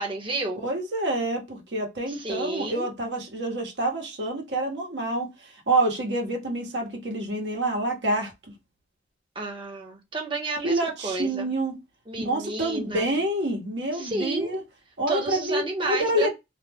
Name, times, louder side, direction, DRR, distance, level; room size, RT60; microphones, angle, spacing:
voice 1, 0.0-0.6 2.1-2.9 9.3-11.5 12.1-13.0 13.9-14.5 15.1-16.3, right 3 dB, 30° right, 0.8 m, -31 dB
voice 2, 0.6-8.3 10.6-11.8 12.2-14.6 15.0-16.3, right 1 dB, 75° right, 1.1 m, -27 dB
2.6 x 2.1 x 3.4 m
head